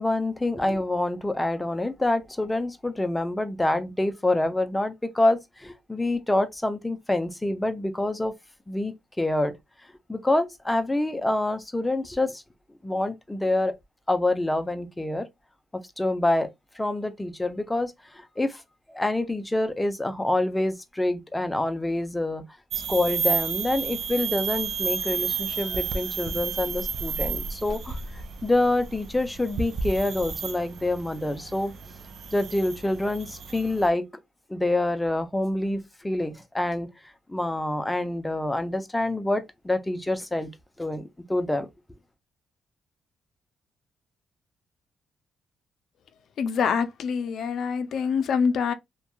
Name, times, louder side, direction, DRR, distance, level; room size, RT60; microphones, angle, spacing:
voice 1, 0.0-8.3 8.7-9.5 10.1-12.4 12.8-13.7 14.1-15.3 16.0-16.5 16.8-18.6 18.9-22.4 22.9-28.0 28.4-31.7 32.3-34.0 34.5-36.9 37.3-40.5 40.8-41.7, left 2 dB, 10° left, 0.5 m, -26 dB
sound 1, 22.7-33.9, right 6 dB, 60° right, 0.4 m, -32 dB
voice 2, 46.4-48.7, left 6 dB, 65° left, 0.4 m, -25 dB
2.7 x 2.2 x 2.3 m
cardioid pair, 90°, 0 cm